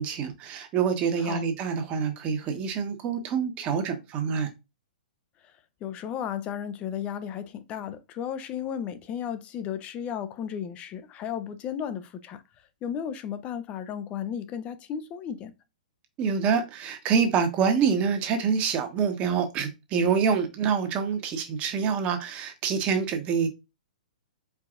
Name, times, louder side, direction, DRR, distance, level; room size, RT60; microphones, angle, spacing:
voice 1, 0.0-4.5 16.2-23.5, right 6 dB, 30° right, 1.2 m, -26 dB
voice 2, 5.8-12.4 12.8-15.5, left 8 dB, 25° left, 0.6 m, -34 dB
4.7 x 4.0 x 2.5 m
hypercardioid pair, 130°, 5 cm